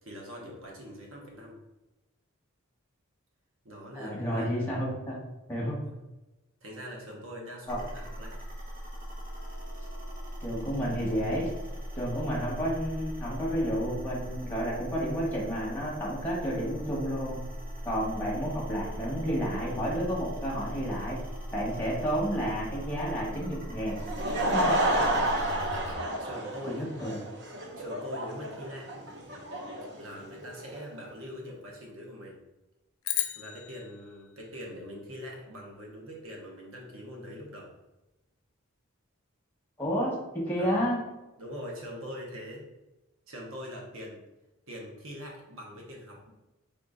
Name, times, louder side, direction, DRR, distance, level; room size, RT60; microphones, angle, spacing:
voice 1, 0.0-1.6 3.6-4.6 5.8-6.0 6.6-8.4 26.2-26.9 27.8-29.0 30.0-32.4 33.3-37.7 40.6-40.9 41.4-42.7 43.3-44.2 44.7-46.3, equal, 70° right, -1 dB, 0.9 m, -43 dB
voice 2, 3.9-5.2 5.5-5.8 7.7-7.8 10.4-11.5 11.9-17.4 17.8-21.2 21.5-24.0 24.5-24.7 26.6-27.2 39.8-41.0, equal, 10° left, -5 dB, 1.3 m, -31 dB
sound 1, 7.7-26.0, equal, 35° right, 1.1 m, -39 dB
Laughter / Crowd, 23.9-30.8, right 1 dB, 55° right, 0.6 m, -30 dB
sound 2, 33.0-35.5, left 11 dB, 75° left, 0.4 m, -36 dB
3.7 x 3.7 x 3.8 m, 0.99 s
head